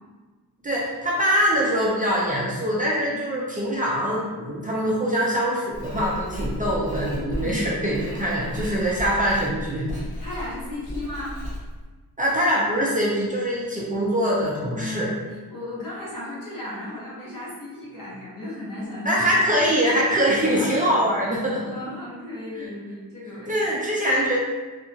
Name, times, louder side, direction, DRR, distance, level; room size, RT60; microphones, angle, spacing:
voice 1, 0.6-9.9 12.2-15.1 19.1-21.7 22.6-22.7 23.5-24.4, equal, 25° right, -6 dB, 0.3 m, -23 dB
Writing, 5.7-11.8, equal, 30° left, 1.3 m, -34 dB
voice 2, 10.2-11.4 14.7-15.1 15.5-19.3 20.4-20.7 21.7-23.6, left 1 dB, 60° left, -7 dB, 1.0 m, -35 dB
2.8 x 2.4 x 2.6 m, 1.3 s
wide cardioid pair, 155°, 38 cm